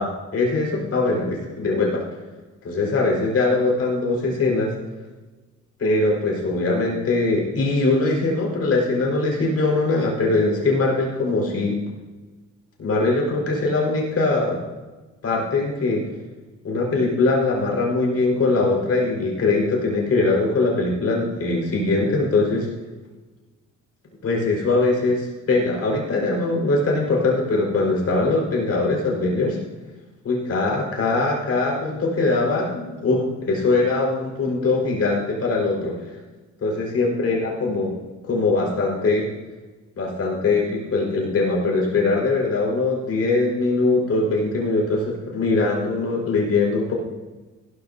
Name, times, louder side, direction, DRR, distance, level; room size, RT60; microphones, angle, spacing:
voice 1, 0.0-2.0 2.6-4.7 5.8-11.8 12.8-14.6 15.2-16.1 16.6-22.7 24.2-29.6 30.2-36.1 36.6-37.9 38.3-39.3 39.9-46.9, left 3 dB, 50° left, -2 dB, 4.9 m, -21 dB
15.5 x 13.5 x 2.8 m, 1.2 s
cardioid pair, 90°, 30 cm